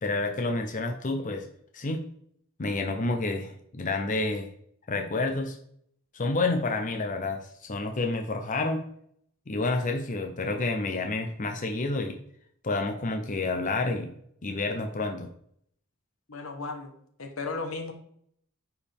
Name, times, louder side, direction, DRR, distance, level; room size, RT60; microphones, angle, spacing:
voice 1, 0.0-1.5 1.7-2.0 2.6-4.5 4.9-5.6 6.1-8.8 9.5-12.2 12.6-14.2 14.4-15.3, left 3 dB, 40° left, 4 dB, 0.7 m, -29 dB
voice 2, 16.3-16.9 17.2-17.9, left 3 dB, 80° left, 4 dB, 1.3 m, -35 dB
9.7 x 4.7 x 3.5 m, 0.67 s
head